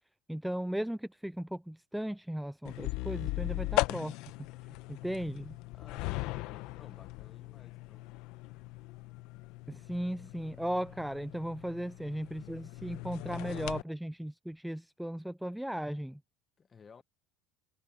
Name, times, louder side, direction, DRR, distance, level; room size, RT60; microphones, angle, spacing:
voice 1, 0.3-4.2 4.9-5.6 9.7-16.2, equal, ahead, 0.3 m, -36 dB
sound 1, 2.6-13.8, left 20 dB, 65° left, 0.8 m, -38 dB
voice 2, 5.7-8.1 16.6-17.0, left 6 dB, 25° left, 1.3 m, -56 dB
supercardioid pair, 135°, 0 cm